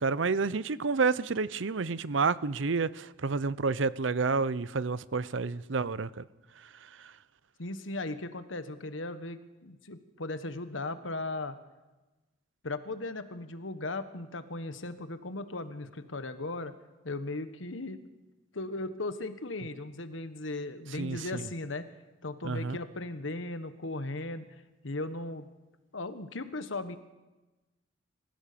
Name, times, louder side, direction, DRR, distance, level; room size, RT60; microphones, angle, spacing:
voice 1, 0.0-6.2 6.8-7.1 21.0-21.5 22.4-22.8, right 4 dB, 75° right, 0.7 m, -30 dB
voice 2, 7.6-11.6 12.6-16.7 17.0-18.0 18.5-21.9 22.2-25.5 25.9-27.0, left 2 dB, 90° left, 1.4 m, -37 dB
26.0 x 15.5 x 6.9 m
head